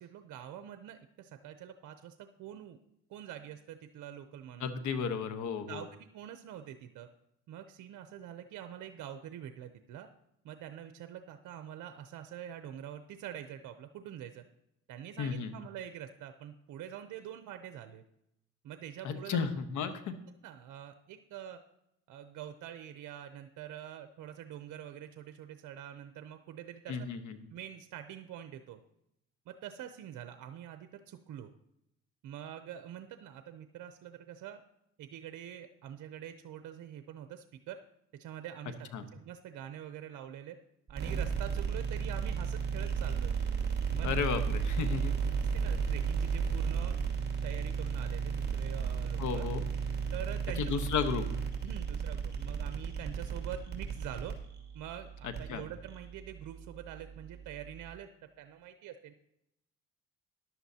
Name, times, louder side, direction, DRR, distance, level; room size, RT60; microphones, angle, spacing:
voice 1, 0.0-2.8 3.1-4.7 5.7-5.9 6.1-7.1 7.5-10.1 10.4-14.4 14.9-18.0 18.6-19.5 19.8-19.9 20.4-21.6 22.1-27.1 27.5-28.8 29.5-31.5 32.2-34.6 35.0-37.8 38.2-40.6 40.9-43.3 43.9-44.2 45.5-46.9 47.4-49.5 50.1-50.7 51.6-54.4 54.7-58.1 58.4-59.1, right 10 dB, 80° right, 9 dB, 0.7 m, -45 dB
voice 2, 4.6-5.9 15.2-15.5 19.0-20.1 26.9-27.4 38.9-39.0 44.0-45.1 49.2-49.6 50.6-51.3 55.2-55.6, left 6 dB, 75° left, 9 dB, 1.1 m, -33 dB
sound 1, 40.9-58.0, right 6 dB, 35° right, 2.4 m, -34 dB
14.0 x 11.0 x 2.8 m, 0.80 s
cardioid pair, 90°, 30 cm